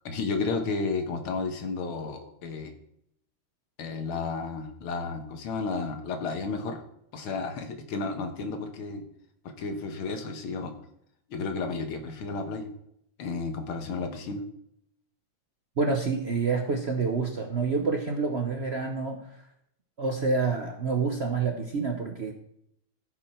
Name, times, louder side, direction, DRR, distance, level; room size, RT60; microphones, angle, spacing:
voice 1, 0.1-2.8 3.8-6.8 7.1-9.1 9.5-10.7 11.3-12.7 13.2-14.4, left 4 dB, 85° left, 6 dB, 2.1 m, -32 dB
voice 2, 15.8-19.2 20.0-22.3, right 4 dB, 50° right, 2 dB, 0.8 m, -27 dB
15.5 x 6.1 x 4.5 m, 0.74 s
omnidirectional pair, 2.3 m